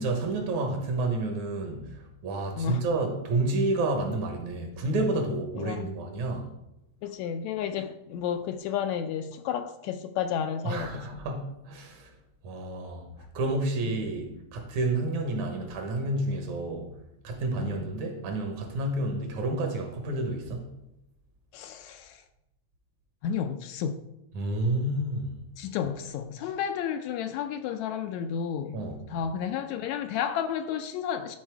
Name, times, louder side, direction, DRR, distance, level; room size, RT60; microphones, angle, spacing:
voice 1, 0.0-6.5 10.6-12.1 12.4-13.1 13.3-16.9 17.2-20.7 24.3-25.4 28.7-29.1, right 2 dB, 75° right, 2.6 m, -30 dB
voice 2, 2.6-2.9 5.5-6.0 7.0-11.3 13.9-14.0 17.6-17.8 21.5-22.2 23.2-24.0 25.6-31.4, left 8 dB, 80° left, 1.7 m, -32 dB
12.0 x 4.1 x 4.6 m
omnidirectional pair, 3.4 m